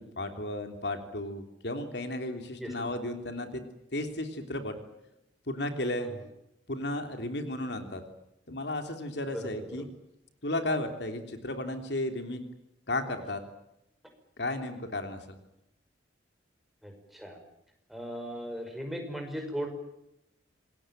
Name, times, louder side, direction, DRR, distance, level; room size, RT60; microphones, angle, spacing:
voice 1, 0.2-3.6 3.9-4.8 5.5-6.1 6.7-8.0 8.5-9.9 10.4-12.4 12.9-13.4 14.4-15.4, left 1 dB, 70° left, 6 dB, 3.2 m, -34 dB
voice 2, 9.3-9.8 16.8-17.4 17.9-19.7, equal, ahead, 4 dB, 5.6 m, -38 dB
27.0 x 21.0 x 9.1 m, 0.83 s
head